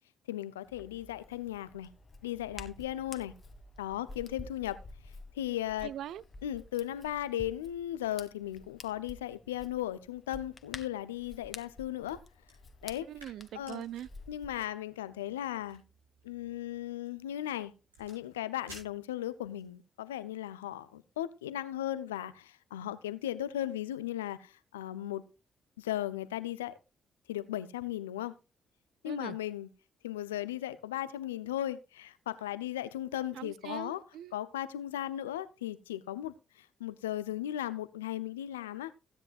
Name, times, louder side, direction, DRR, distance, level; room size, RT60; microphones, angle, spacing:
voice 1, 0.3-1.9 2.2-3.3 3.8-4.8 5.3-5.9 6.4-12.2 12.8-13.1 13.5-13.8 14.3-15.8 16.2-17.7 18.0-25.2 25.8-26.8 27.3-28.3 29.0-29.7 30.0-34.0 34.3-38.9, left 12 dB, 80° left, 0.6 m, -36 dB
Hands, 0.6-14.6, left 3 dB, 40° left, 1.6 m, -51 dB
voice 2, 5.8-6.2 13.1-14.1 29.0-29.4 33.3-34.3, right 12 dB, 60° right, 0.4 m, -42 dB
sound 1, 12.4-19.8, equal, 85° right, 6.0 m, -58 dB
15.5 x 9.8 x 2.5 m
figure-of-eight pair, 40°, 0 cm